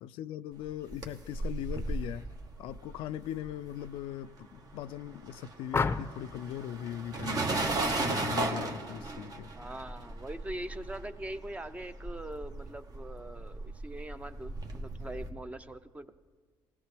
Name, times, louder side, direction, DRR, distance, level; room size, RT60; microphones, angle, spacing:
voice 1, 0.0-2.3 2.6-9.5, left 11 dB, 85° left, 0.3 m, -40 dB
sound 1, 0.7-4.3 4.6-15.3, right 2 dB, 45° right, 1.3 m, -36 dB
sound 2, 5.7-6.3 8.1-8.4 8.7-9.1, left 4 dB, 25° left, 0.6 m, -32 dB
voice 2, 9.6-16.1, right 1 dB, 15° right, 0.7 m, -42 dB
20.0 x 16.5 x 3.3 m
cardioid pair, 85°, 9 cm